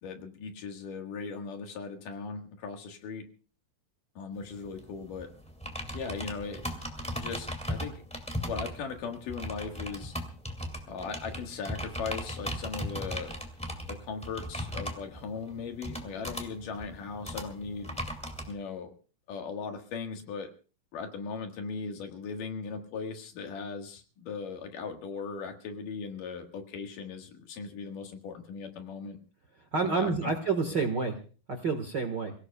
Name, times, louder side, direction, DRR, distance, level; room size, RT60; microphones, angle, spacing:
voice 1, 0.0-3.3 4.2-5.3 5.9-6.6 7.2-8.0 8.5-10.1 10.9-13.4 13.9-17.9 18.5-18.9 19.3-20.5 20.9-29.2 29.8-30.4 30.7-30.8, left 5 dB, 70° left, 5 dB, 3.2 m, -38 dB
sound 1, 4.3-18.5, equal, 5° left, 1.5 m, -38 dB
voice 2, 29.7-31.2 31.5-32.3, right 4 dB, 45° right, 5 dB, 1.5 m, -29 dB
28.5 x 17.0 x 2.3 m, 0.37 s
omnidirectional pair, 4.0 m